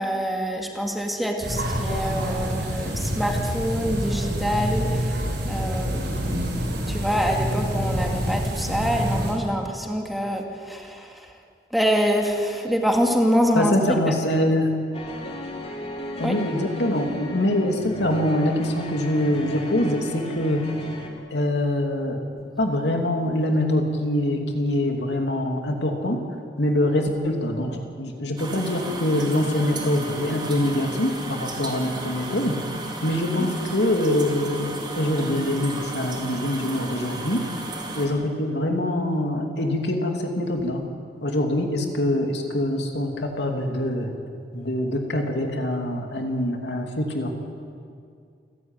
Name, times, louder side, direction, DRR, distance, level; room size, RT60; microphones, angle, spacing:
voice 1, 0.0-6.4 6.9-11.4 11.7-14.2 16.2-16.4 33.4-33.5, equal, ahead, 1 dB, 2.3 m, -25 dB
sound 1, 1.4-9.3, equal, 70° right, 7.2 m, -27 dB
voice 2, 13.5-14.7 16.2-20.6 21.3-22.2 22.6-26.2 26.6-37.4 37.9-40.8 41.2-44.1 44.5-47.3, left 1 dB, 75° left, 3 dB, 2.8 m, -24 dB
sound 2, 14.9-21.1, left 1 dB, 35° left, 3.0 m, -35 dB
sound 3, 28.4-38.1, right 2 dB, 25° right, 4.2 m, -34 dB
29.0 x 14.0 x 9.1 m, 2.3 s
head